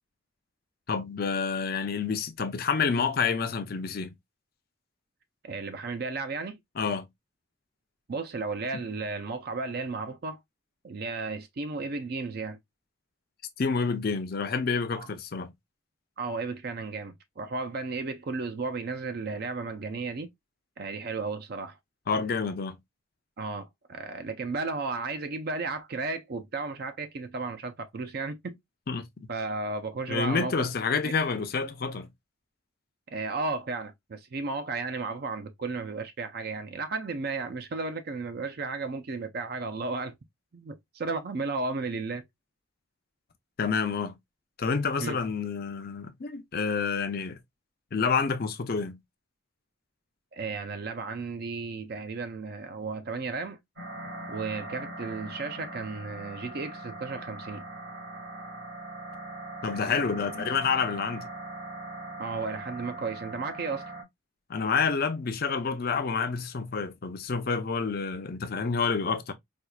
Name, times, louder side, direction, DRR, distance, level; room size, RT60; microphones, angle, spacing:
voice 1, 0.9-4.1 6.8-7.1 8.7-8.8 13.6-15.5 22.1-22.8 28.9-29.3 30.1-32.1 43.6-44.1 44.6-47.4 47.9-49.0 59.6-61.3 64.5-69.3, left 5 dB, 45° left, 0.5 m, -28 dB
voice 2, 5.4-6.6 8.1-10.4 10.8-12.6 14.9-15.1 16.2-20.3 20.8-21.8 23.4-28.6 29.3-30.5 31.0-31.1 33.1-40.1 40.5-42.2 45.0-45.2 50.3-53.6 54.3-57.6 62.2-63.8, right 3 dB, 45° right, 0.4 m, -34 dB
sound 1, 53.8-64.0, right 1 dB, 70° right, 2.1 m, -41 dB
4.4 x 2.4 x 2.2 m
head